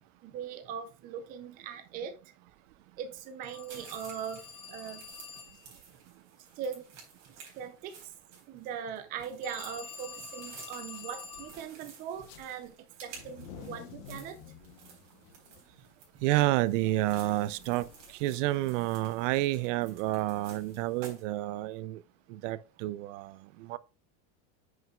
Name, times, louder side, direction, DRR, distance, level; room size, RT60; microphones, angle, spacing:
voice 1, 0.2-2.2 3.0-5.0 6.6-6.9 7.3-8.1 8.5-12.7 13.0-14.4 16.1-16.2, right 8 dB, 25° right, 0.5 m, -40 dB
Telephone, 3.4-5.7 9.4-11.6, left 6 dB, 15° left, 0.7 m, -46 dB
sound 1, 3.7-21.2, right 5 dB, 45° right, 4.0 m, -53 dB
sound 2, 12.1-12.4 13.0-21.5, left 6 dB, 45° left, 1.0 m, -53 dB
voice 2, 16.2-22.0 22.3-23.8, right 16 dB, 70° right, 0.6 m, -30 dB
9.1 x 6.4 x 2.3 m
cardioid pair, 180°, 39 cm